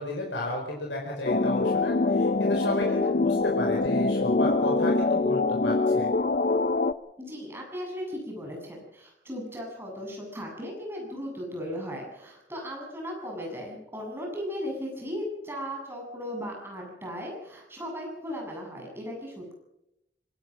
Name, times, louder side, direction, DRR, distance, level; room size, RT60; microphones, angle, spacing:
voice 1, 0.0-6.1, left 1 dB, 85° left, -1 dB, 4.8 m, -33 dB
sound 1, 1.2-6.9, left 3 dB, 50° left, 0.7 m, -24 dB
voice 2, 7.2-19.5, equal, 15° right, -1 dB, 7.6 m, -37 dB
25.5 x 18.5 x 6.1 m, 0.85 s
head